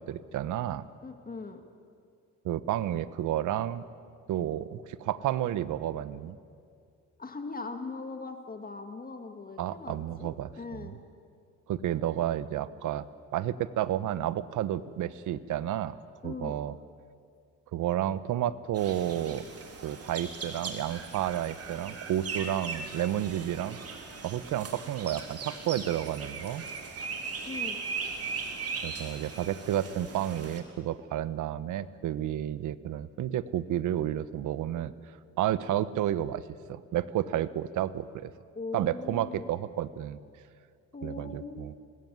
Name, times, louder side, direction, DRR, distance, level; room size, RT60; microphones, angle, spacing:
voice 1, 0.0-0.8 2.4-3.8 4.3-6.4 9.6-10.9 11.7-13.0 13.3-16.0 16.2-16.7 17.7-19.4 19.8-23.8 24.2-26.6 28.8-36.4 36.7-38.3 38.7-40.2 41.0-41.7, right 11 dB, 80° right, 15 dB, 1.1 m, -31 dB
voice 2, 1.0-1.6 7.2-11.0 16.2-16.6 27.4-27.8 38.5-39.5 40.9-41.8, left 3 dB, 30° left, 6 dB, 2.3 m, -40 dB
sound 1, 18.7-30.6, right 4 dB, 50° right, 3.8 m, -39 dB
25.5 x 20.5 x 9.4 m, 2.3 s
cardioid pair, 90°, 30 cm